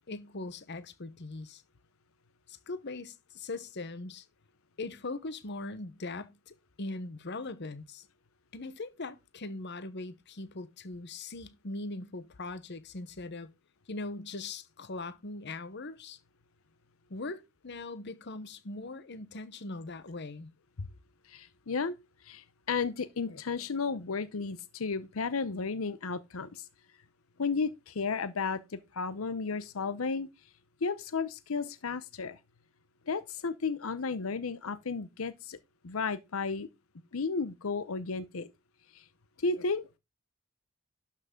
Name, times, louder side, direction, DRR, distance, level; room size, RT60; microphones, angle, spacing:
voice 1, 0.1-1.6 2.5-4.2 4.8-8.1 8.5-13.5 13.9-16.2 17.1-20.5, left 2 dB, 55° left, 1.0 m, -40 dB
voice 2, 21.3-21.9 22.2-26.6 27.4-30.3 30.8-32.4 33.1-35.6 35.8-36.7 37.1-38.5 38.9-39.0 39.4-40.0, left 4 dB, 85° left, 0.7 m, -33 dB
12.0 x 5.8 x 3.7 m
head